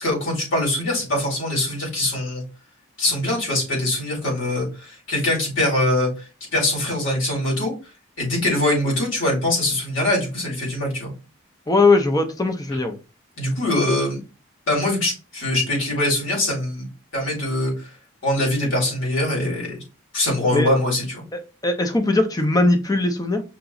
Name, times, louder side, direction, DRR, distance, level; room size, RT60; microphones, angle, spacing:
voice 1, 0.0-2.4 3.0-7.7 8.2-11.1 13.4-14.2 14.7-16.9 17.1-17.9 18.2-19.8 20.1-21.2, left 1 dB, 75° left, -3 dB, 2.3 m, -23 dB
voice 2, 11.7-13.0 20.5-20.7 21.3-23.4, left 2 dB, 20° left, 7 dB, 0.6 m, -20 dB
5.8 x 2.9 x 2.6 m, 0.31 s
head